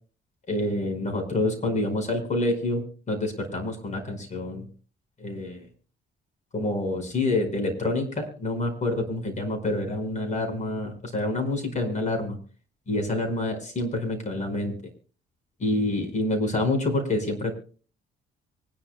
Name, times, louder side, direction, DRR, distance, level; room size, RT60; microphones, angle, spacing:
voice 1, 0.5-4.6 5.2-5.7 6.5-12.4 12.9-14.7 15.6-17.5, left 2 dB, 35° left, 5 dB, 5.1 m, -27 dB
25.0 x 11.0 x 2.2 m, 0.39 s
cardioid pair, 90°, 20 cm